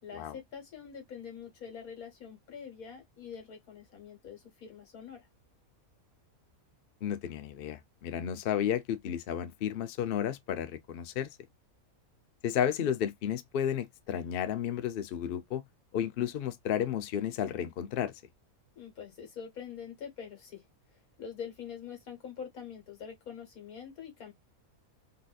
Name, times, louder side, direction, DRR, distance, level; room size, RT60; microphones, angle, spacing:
voice 1, 0.0-5.3 18.8-24.3, left 7 dB, 80° left, 1.9 m, -45 dB
voice 2, 7.0-11.3 12.4-15.6 15.9-18.1, left 9 dB, 65° left, 0.6 m, -32 dB
4.0 x 2.6 x 2.3 m
omnidirectional pair, 1.5 m